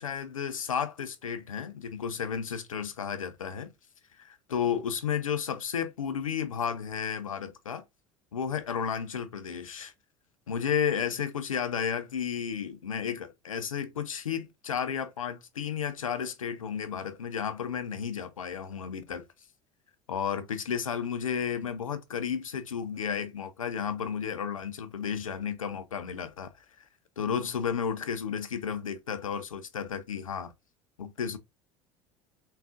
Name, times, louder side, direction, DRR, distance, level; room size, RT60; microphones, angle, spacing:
voice 1, 0.0-3.7 4.2-7.8 8.3-9.9 10.5-19.2 20.1-26.5 27.2-30.5 31.0-31.4, left 7 dB, 85° left, 0.5 m, -32 dB
3.5 x 2.3 x 2.5 m
figure-of-eight pair, 70°, 17 cm